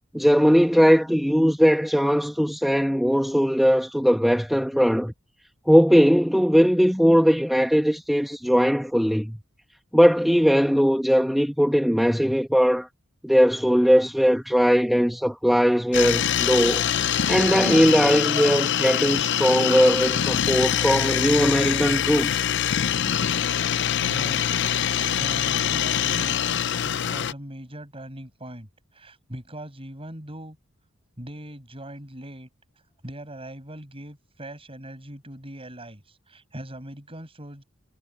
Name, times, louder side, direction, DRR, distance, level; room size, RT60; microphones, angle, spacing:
voice 1, 0.1-5.1 5.7-9.4 9.9-12.9 13.2-16.8 17.3-22.5, equal, ahead, 1.4 m, -19 dB
sound 1, 15.9-27.3, left 9 dB, 60° left, 0.6 m, -24 dB
voice 2, 18.2-18.6 24.0-30.6 31.2-32.5 33.0-37.6, right 1 dB, 30° right, 6.7 m, -40 dB
head